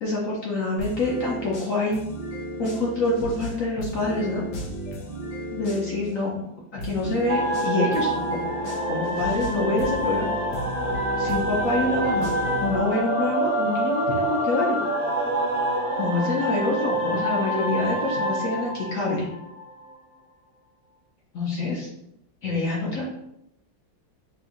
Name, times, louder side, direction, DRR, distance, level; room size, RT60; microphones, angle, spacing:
voice 1, 0.0-2.0 2.6-4.4 5.5-6.5 6.8-8.5 8.9-10.3 11.2-12.3 12.6-14.8 16.0-19.3 21.3-21.9 22.4-23.1, left 2 dB, 65° left, -3 dB, 0.8 m, -26 dB
sound 1, 0.8-6.1 6.8-12.8, equal, 90° left, 1.6 m, -34 dB
sound 2, 7.3-19.9, right 1 dB, 35° right, 0.6 m, -27 dB
5.8 x 2.6 x 2.5 m, 0.82 s
omnidirectional pair, 2.1 m